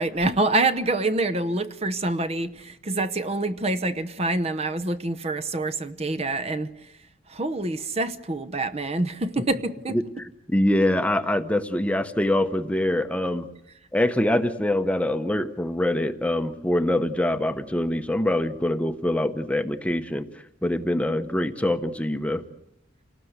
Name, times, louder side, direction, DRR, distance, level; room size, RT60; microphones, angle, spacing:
voice 1, 0.0-7.0 7.3-10.0, right 2 dB, 30° right, 12 dB, 0.9 m, -26 dB
voice 2, 9.9-13.5 13.9-22.4, left 1 dB, 5° left, 9 dB, 0.9 m, -24 dB
28.5 x 19.0 x 8.1 m, 0.82 s
head